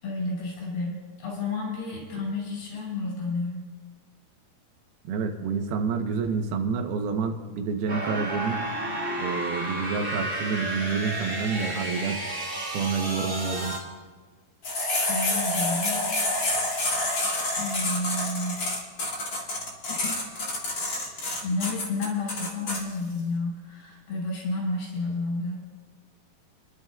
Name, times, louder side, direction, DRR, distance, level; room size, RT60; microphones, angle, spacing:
voice 1, 0.0-3.6 15.1-16.7 17.5-18.6 19.9-20.2 21.4-25.6, left 2 dB, 85° left, -4 dB, 7.0 m, -31 dB
voice 2, 5.0-8.7 9.2-12.2 12.7-13.8, right 5 dB, 75° right, 5 dB, 2.8 m, -28 dB
sound 1, 7.9-13.8, right 1 dB, 30° right, 1.4 m, -31 dB
sound 2, 14.6-22.8, left 2 dB, 40° left, 1.8 m, -28 dB
29.0 x 11.5 x 2.3 m, 1.4 s
omnidirectional pair, 4.5 m